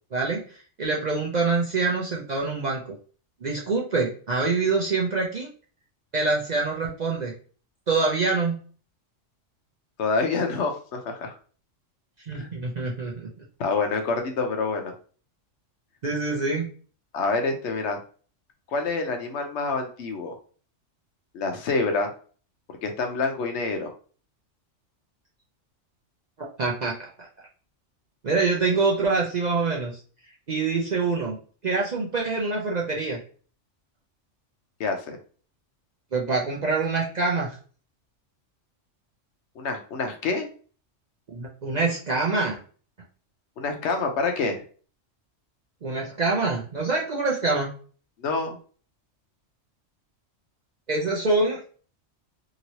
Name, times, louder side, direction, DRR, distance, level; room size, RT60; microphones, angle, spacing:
voice 1, 0.1-2.8 3.4-5.5 6.1-7.3 7.9-8.6 12.3-13.4 16.0-16.7 26.4-27.1 28.2-30.0 30.5-31.4 31.6-33.2 36.1-37.5 41.3-42.6 45.8-47.7 50.9-51.6, right 3 dB, 50° right, -2 dB, 0.5 m, -25 dB
voice 2, 10.0-11.3 12.3-12.5 13.6-14.9 17.1-18.0 18.7-20.3 21.3-22.1 22.8-23.9 34.8-35.2 39.6-40.5 43.6-44.6 48.2-48.6, left 3 dB, 70° left, 4 dB, 0.9 m, -27 dB
2.9 x 2.9 x 2.7 m, 0.41 s
omnidirectional pair, 1.3 m